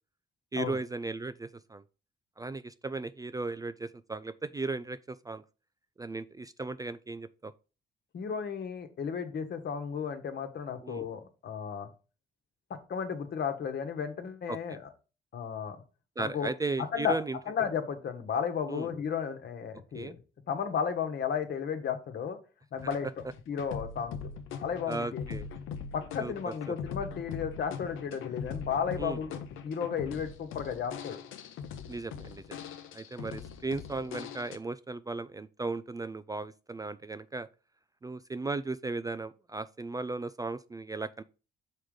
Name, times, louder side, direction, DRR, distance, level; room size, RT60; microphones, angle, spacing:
voice 1, 0.5-1.8 2.4-5.4 6.0-7.5 10.8-11.1 14.5-14.8 16.2-17.4 18.7-18.9 19.9-20.1 24.9-25.5 26.2-26.8 29.0-29.2 31.9-32.6 32.9-37.5 38.0-41.2, right 3 dB, 20° right, 0.3 m, -36 dB
voice 2, 8.1-11.9 12.9-14.9 15.3-15.8 16.2-16.5 16.8-17.2 17.5-20.2 20.5-22.4 22.7-23.1 23.5-24.2 24.5-25.2 25.9-31.2, left 7 dB, 60° left, 1.2 m, -33 dB
sound 1, 22.8-34.6, left 6 dB, 90° left, 0.7 m, -41 dB
6.4 x 3.8 x 4.8 m
cardioid pair, 90°, 20 cm